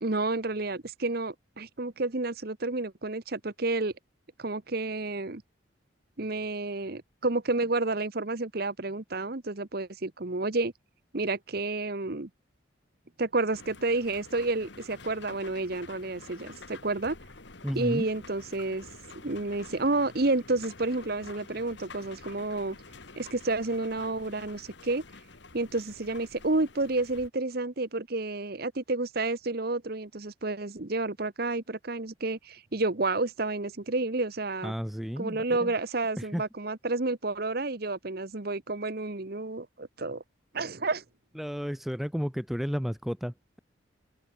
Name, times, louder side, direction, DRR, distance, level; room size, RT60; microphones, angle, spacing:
voice 1, 0.0-3.9 4.4-5.4 6.2-10.7 11.1-12.3 13.2-17.1 17.7-18.8 19.2-22.8 23.2-25.0 25.5-34.7 35.2-40.2 40.5-41.0, right 2 dB, 50° right, 1.1 m, -30 dB
sound 1, 13.5-27.3, left 3 dB, 65° left, 2.0 m, -49 dB
voice 2, 17.6-18.1 34.6-35.7 36.2-36.4 41.3-43.6, equal, ahead, 0.5 m, -33 dB
head